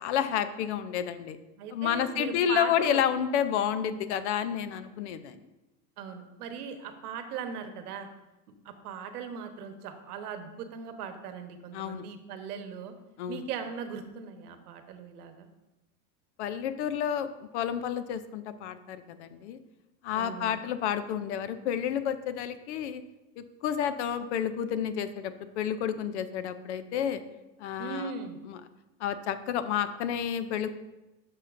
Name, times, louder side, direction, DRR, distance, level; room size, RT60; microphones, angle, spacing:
voice 1, 0.0-1.4 1.7-5.4 11.7-12.0 13.2-13.4 16.4-19.6 20.0-23.0 23.4-27.2 27.6-28.1 28.5-28.6 29.0-30.7, left 9 dB, 50° left, 12 dB, 0.5 m, -30 dB
voice 2, 1.6-3.0 6.0-8.1 8.6-12.9 13.3-15.5 20.1-20.6 27.8-28.4, right 6 dB, 75° right, 7 dB, 1.1 m, -39 dB
12.0 x 5.8 x 2.5 m, 1.0 s
supercardioid pair, 160°, 46 cm